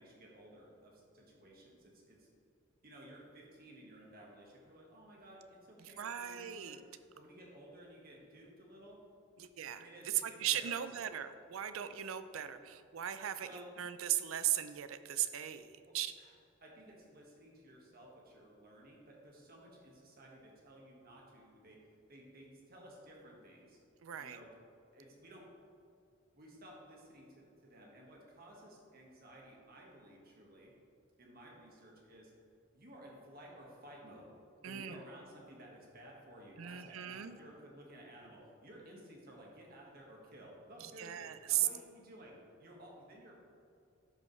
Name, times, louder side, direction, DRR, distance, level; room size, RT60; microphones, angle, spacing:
voice 1, 0.0-2.3 2.8-6.8 7.1-9.0 9.8-10.8 12.4-12.5 13.4-13.7 15.8-16.3 16.6-21.8 22.1-23.8 24.2-24.5 24.9-25.5 26.3-30.7 31.2-32.3 32.7-34.3 34.6-42.3 42.6-43.4, right 1 dB, 45° right, -2 dB, 1.6 m, -55 dB
voice 2, 5.8-6.8 9.4-16.1 24.0-24.4 34.6-35.0 36.6-37.4 40.8-41.7, right 11 dB, 80° right, 11 dB, 0.4 m, -37 dB
12.0 x 5.3 x 3.2 m, 2.4 s
head